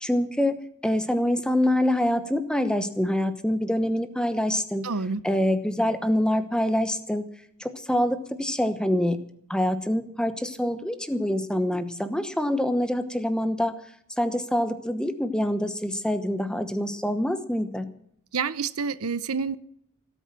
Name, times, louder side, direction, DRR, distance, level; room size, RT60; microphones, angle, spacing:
voice 1, 0.0-0.6 0.8-4.9 5.2-7.2 7.6-13.7 14.2-17.9, left 1 dB, 5° left, 10 dB, 1.0 m, -25 dB
voice 2, 4.8-5.2 18.3-19.6, right 5 dB, 75° right, 15 dB, 0.7 m, -28 dB
17.5 x 8.5 x 7.4 m, 0.67 s
head